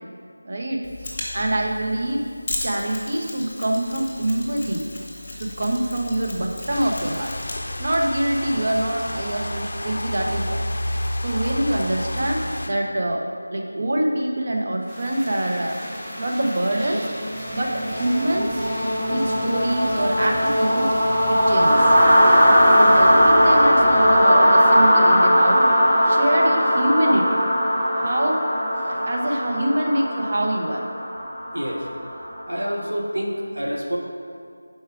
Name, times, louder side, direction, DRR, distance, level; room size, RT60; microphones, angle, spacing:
voice 1, 0.4-2.2 2.6-4.8 5.4-7.3 7.8-10.6 11.2-13.3 13.5-15.8 16.2-17.1 17.5-18.6 19.1-20.9 21.3-21.8 22.8-25.7 26.0-27.4 28.0-28.5 28.8-30.8, right 1 dB, 45° right, 0 dB, 0.7 m, -25 dB
Mechanisms, 0.8-8.1, left 2 dB, 25° left, 1.0 m, -36 dB
sound 1, 6.7-12.7, left 1 dB, 55° left, 0.4 m, -30 dB
sound 2, 15.0-32.8, equal, ahead, 0.7 m, -19 dB
voice 2, 31.5-31.9 32.5-34.0, equal, 80° right, 0 dB, 0.9 m, -27 dB
4.7 x 4.3 x 4.8 m, 2.3 s
figure-of-eight pair, 170°, 0 cm